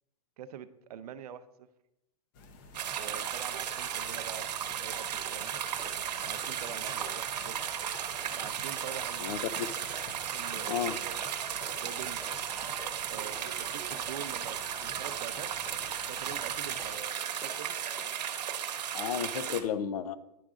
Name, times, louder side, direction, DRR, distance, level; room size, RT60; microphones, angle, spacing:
voice 1, 0.4-1.7 2.9-5.6 6.2-7.6 8.3-9.3 10.3-11.3 11.8-12.2 13.1-15.6 16.1-17.8, right 9 dB, 70° right, 13 dB, 0.6 m, -45 dB
sound 1, 2.3-17.0, left 3 dB, 30° left, 0.7 m, -52 dB
sound 2, 2.7-19.6, right 9 dB, 85° right, 0.9 m, -35 dB
sound 3, 4.7-4.8 5.2-5.4 5.8-6.0 6.3-6.7 7.0-7.1 7.6-7.7 8.2-8.3 8.8-8.9 9.4-9.5 9.9-10.1 10.5-10.6 11.1-11.3 11.6-11.8 12.2-12.4 12.8-12.9 13.3-13.5 13.9-14.1 14.5-14.6 15.1-15.3 15.7-15.8 16.3-16.4 16.8-16.9 17.4-17.5 18.0-18.1, equal, ahead, 0.9 m, -49 dB
voice 2, 9.2-9.7 10.7-11.0 18.9-20.2, left 8 dB, 65° left, 14 dB, 0.6 m, -33 dB
10.5 x 3.8 x 3.6 m, 0.88 s
supercardioid pair, 170°, 21 cm